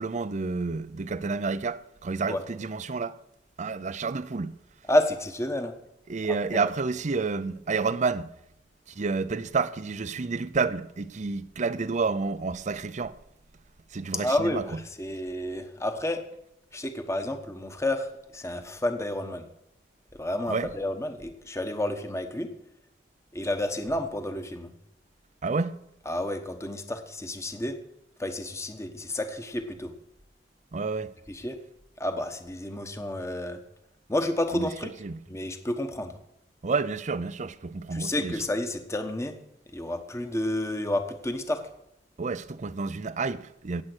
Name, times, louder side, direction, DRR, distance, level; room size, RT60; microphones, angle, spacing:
voice 1, 0.0-3.2 3.6-4.5 6.1-8.3 8.9-13.2 13.9-14.6 20.5-20.7 25.4-25.8 30.7-31.1 34.5-34.7 35.0-35.2 36.6-38.3 42.2-43.8, right 4 dB, 45° right, 0.5 m, -29 dB
voice 2, 4.9-5.7 6.3-6.6 14.1-16.2 16.7-19.4 20.1-22.5 23.3-24.7 26.0-27.8 28.2-29.9 31.3-31.6 32.0-33.6 34.1-34.9 35.3-36.2 37.9-39.4 39.7-41.6, left 1 dB, 15° left, 1.1 m, -30 dB
17.5 x 7.8 x 6.2 m
head